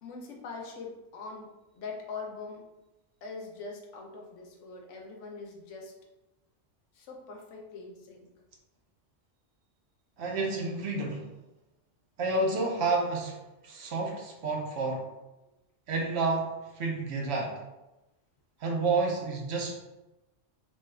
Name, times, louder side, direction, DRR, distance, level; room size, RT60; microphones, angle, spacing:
voice 1, 0.0-1.5 1.7-2.7 3.2-5.9 6.9-8.3, left 4 dB, 80° left, 1 dB, 1.0 m, -42 dB
voice 2, 10.2-11.3 12.2-15.1 15.9-17.6 18.6-19.8, right 3 dB, 65° right, 0 dB, 0.8 m, -30 dB
3.0 x 2.3 x 3.2 m, 1.0 s
omnidirectional pair, 1.3 m